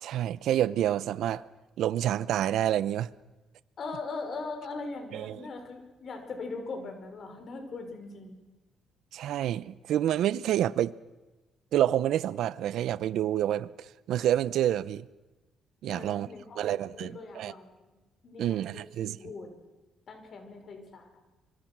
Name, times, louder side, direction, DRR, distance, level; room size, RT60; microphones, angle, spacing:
voice 1, 0.0-1.5 1.8-3.1 5.1-5.4 9.1-10.9 11.7-13.7 14.1-15.1 15.8-16.3 16.6-17.5 18.4-19.2, right 11 dB, 80° right, 0.7 m, -28 dB
voice 2, 3.8-8.3 15.9-17.7 18.2-19.5 20.1-21.2, left 3 dB, 55° left, 5.6 m, -40 dB
25.5 x 24.0 x 6.2 m
cardioid pair, 90°, 0 cm